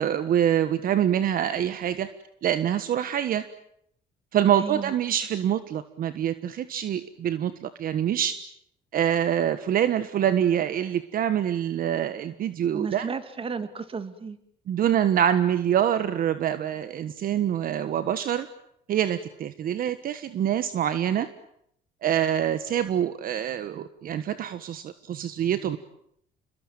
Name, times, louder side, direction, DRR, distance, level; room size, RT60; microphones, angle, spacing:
voice 1, 0.0-2.1 2.4-3.4 4.3-8.4 8.9-13.1 14.7-18.5 18.9-21.3 22.0-25.8, right 10 dB, 60° right, 12 dB, 1.4 m, -25 dB
voice 2, 4.5-4.9 12.7-14.4, right 5 dB, 35° right, 11 dB, 2.8 m, -33 dB
29.0 x 22.0 x 9.1 m, 0.72 s
cardioid pair, 110°, 17 cm